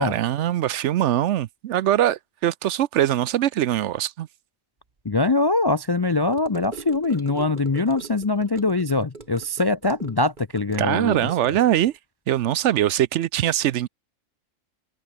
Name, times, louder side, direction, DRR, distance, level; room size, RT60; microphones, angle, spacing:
voice 1, 0.0-4.3 10.8-11.9 12.3-13.9, right 12 dB, 70° right, 0.9 m, -22 dB
voice 2, 5.0-11.3, left 3 dB, 35° left, 0.4 m, -23 dB
Gurgling / Car passing by / Sink (filling or washing), 6.3-12.0, right 3 dB, 35° right, 2.1 m, -42 dB
omnidirectional pair, 1.3 m